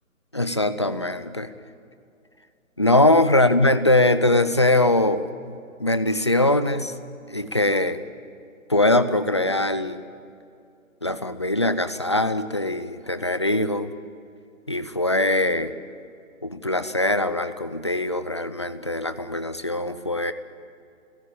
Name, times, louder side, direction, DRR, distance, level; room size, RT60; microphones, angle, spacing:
voice 1, 0.3-1.5 2.8-5.5 5.8-6.9 7.3-8.0 8.7-10.0 11.0-13.9 14.7-15.7 16.4-20.3, left 1 dB, 20° left, 12 dB, 0.5 m, -22 dB
30.0 x 16.0 x 8.7 m, 2.5 s
figure-of-eight pair, 155°, 40 cm